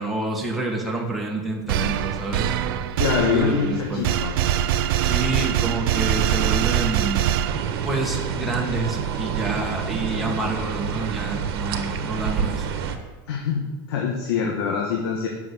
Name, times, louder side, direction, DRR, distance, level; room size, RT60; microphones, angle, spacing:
voice 1, 0.0-2.5 3.3-4.1 5.0-7.3 7.8-12.8, right 2 dB, ahead, -2 dB, 1.7 m, -28 dB
sound 1, 1.7-8.0, right 10 dB, 70° right, 0.7 m, -23 dB
voice 2, 3.0-4.3 13.3-15.3, left 6 dB, 85° left, 0 dB, 1.8 m, -24 dB
sound 2, 7.4-13.0, right 7 dB, 85° right, 1.5 m, -28 dB
9.4 x 7.0 x 8.1 m, 1.2 s
supercardioid pair, 160°, 13 cm